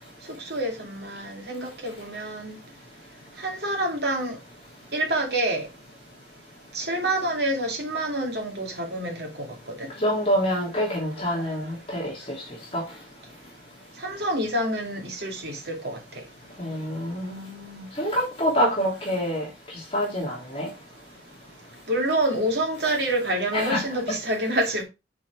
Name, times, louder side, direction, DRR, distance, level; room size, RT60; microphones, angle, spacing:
voice 1, 0.4-2.6 3.4-4.4 4.9-5.7 6.7-9.9 11.4-11.5 14.0-16.0 21.9-24.8, right 1 dB, 65° right, 2.4 m, -27 dB
voice 2, 10.0-12.4 12.7-12.8 16.6-19.4 19.7-20.7 23.5-23.8, equal, 30° left, 3.0 m, -26 dB
6.3 x 6.0 x 4.5 m
head